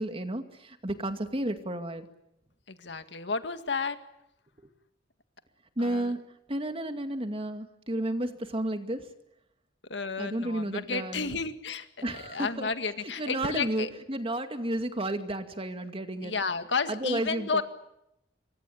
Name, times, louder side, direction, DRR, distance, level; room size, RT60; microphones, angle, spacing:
voice 1, 0.0-2.1 5.8-6.2 6.5-9.0 10.2-11.4 12.0-12.7 13.2-16.3 16.9-17.6, right 1 dB, 30° right, 7 dB, 2.3 m, -32 dB
voice 2, 2.7-4.0 5.8-6.1 9.9-13.9 16.2-17.6, left 4 dB, 75° left, 9 dB, 2.0 m, -32 dB
26.5 x 23.0 x 8.8 m, 0.84 s
head